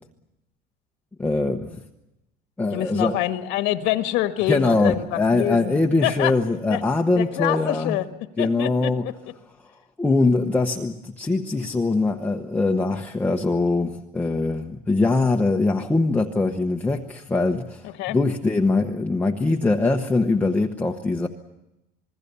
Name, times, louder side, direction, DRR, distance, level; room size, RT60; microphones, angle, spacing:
voice 1, 1.2-1.7 2.6-3.2 4.5-8.0 8.4-9.0 10.0-21.3, left 3 dB, 10° left, 1 dB, 1.0 m, -22 dB
voice 2, 2.7-6.3 6.7-6.8 7.2-8.1 8.4-9.1 17.8-18.2, left 14 dB, 75° left, 8 dB, 1.6 m, -26 dB
28.0 x 21.0 x 6.9 m, 0.94 s
cardioid pair, 160°, 19 cm